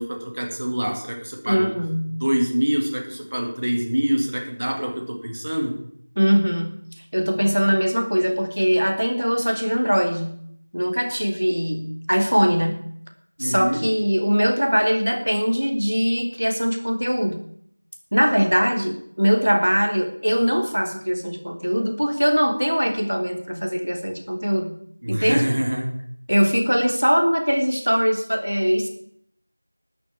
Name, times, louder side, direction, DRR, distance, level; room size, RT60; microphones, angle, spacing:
voice 1, 0.0-1.7 2.2-5.8 13.4-13.8 25.0-25.9, equal, 25° right, 3 dB, 2.1 m, -25 dB
voice 2, 1.4-2.2 6.1-6.8 7.1-10.3 10.7-12.8 13.4-17.5 18.1-24.7 25.1-25.5 26.3-28.9, equal, 60° right, 4 dB, 3.4 m, -21 dB
13.5 x 8.8 x 8.5 m, 0.66 s
figure-of-eight pair, 180°, 0 cm